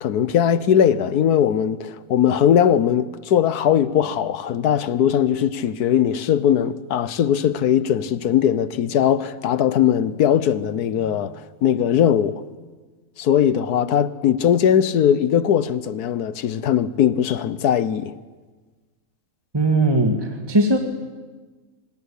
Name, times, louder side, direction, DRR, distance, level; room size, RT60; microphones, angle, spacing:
voice 1, 0.0-12.4 13.2-18.2, left 9 dB, 85° left, 1.4 m, -19 dB
voice 2, 19.5-20.8, right 2 dB, 15° right, 1.7 m, -19 dB
24.5 x 20.0 x 8.4 m
omnidirectional pair, 1.6 m